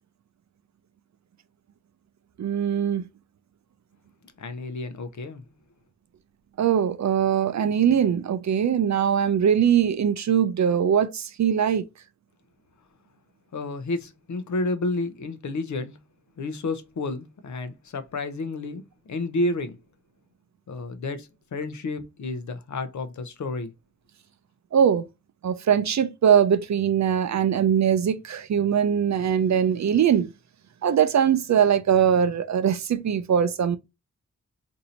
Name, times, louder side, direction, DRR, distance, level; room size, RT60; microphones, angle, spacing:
voice 1, 2.4-3.1 6.6-11.8 24.7-25.1 25.4-30.3 30.8-33.8, right 8 dB, 70° right, 0.5 m, -21 dB
voice 2, 4.4-5.4 13.5-16.0 16.4-19.8 20.7-23.7, left 2 dB, 70° left, 0.6 m, -31 dB
2.7 x 2.6 x 4.2 m
wide cardioid pair, 120°, 30 cm